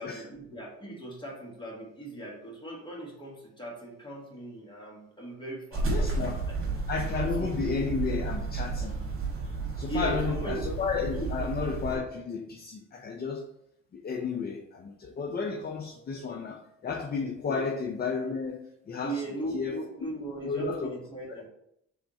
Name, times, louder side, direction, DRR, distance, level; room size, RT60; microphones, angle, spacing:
voice 1, 0.0-6.6 7.1-7.9 9.9-10.6 11.1-11.5 15.4-15.5 17.4-17.7 19.0-21.5, right 1 dB, 15° left, -3 dB, 1.6 m, -39 dB
sound 1, 5.7-12.0, right 4 dB, 45° right, 1.8 m, -32 dB
voice 2, 5.9-6.4 6.9-9.0 9.8-13.5 13.9-19.2 19.5-19.8 20.4-20.9 21.3-21.4, left 5 dB, 35° left, 4 dB, 0.5 m, -32 dB
3.5 x 3.5 x 4.0 m, 0.77 s
cardioid pair, 90°, 30 cm